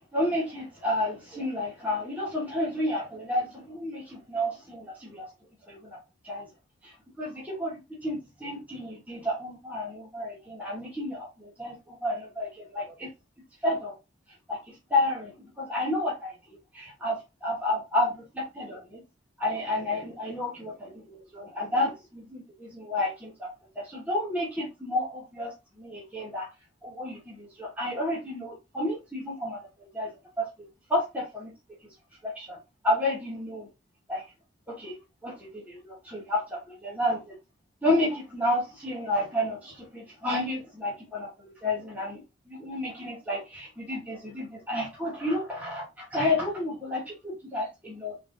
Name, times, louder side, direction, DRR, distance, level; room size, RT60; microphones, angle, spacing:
voice 1, 0.1-5.3 5.7-6.0 6.2-6.5 6.8-13.1 13.6-13.9 14.5-19.0 19.4-23.5 23.7-25.5 25.8-26.5 26.8-30.1 30.4-30.5 30.9-31.5 32.2-32.6 32.8-33.7 34.1-34.2 34.7-34.9 35.2-37.3 37.8-42.2 42.5-48.1, left 1 dB, 10° right, 1.1 m, -31 dB
3.6 x 3.4 x 2.6 m
head